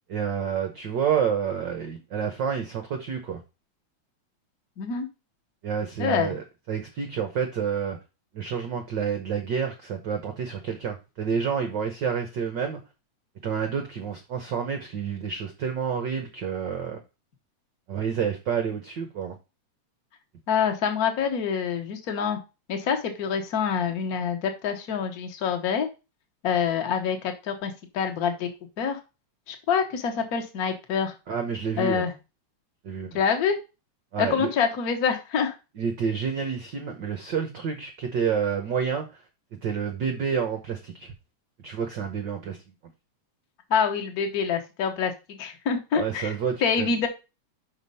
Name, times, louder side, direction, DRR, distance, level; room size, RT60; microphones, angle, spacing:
voice 1, 0.1-3.4 5.6-8.0 8.3-12.8 13.4-17.0 17.9-19.4 31.3-32.1 32.8-33.2 34.1-34.5 35.8-39.1 39.6-41.1 41.6-42.6 45.9-46.9, right 7 dB, 80° right, 6 dB, 1.0 m, -29 dB
voice 2, 6.0-6.3 20.5-22.4 22.7-25.9 26.4-28.5 28.8-29.0 29.5-31.1 31.8-32.1 33.1-33.6 34.2-35.5 43.7-46.3 46.6-47.1, left 6 dB, 50° left, 4 dB, 1.1 m, -26 dB
5.9 x 5.2 x 5.4 m, 0.28 s
omnidirectional pair, 3.5 m